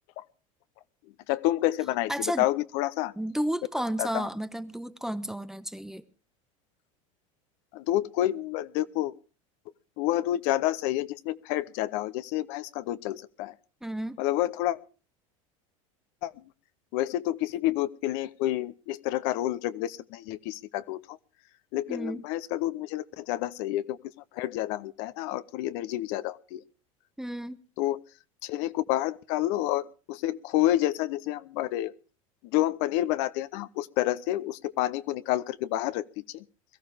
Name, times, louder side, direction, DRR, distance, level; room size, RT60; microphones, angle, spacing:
voice 1, 1.3-2.1 2.4-3.1 4.0-4.3 7.7-9.1 10.0-13.5 14.2-14.8 16.2-16.3 16.9-21.2 21.7-24.0 24.3-26.6 27.8-28.0 28.4-31.9 32.5-36.0 36.3-36.4, left 14 dB, 65° left, 0.8 m, -29 dB
voice 2, 2.1-2.5 3.2-6.0 13.8-14.2 21.9-22.2 27.2-27.6, right 1 dB, 5° right, 1.0 m, -32 dB
22.0 x 14.0 x 3.5 m
hypercardioid pair, 100°, 17 cm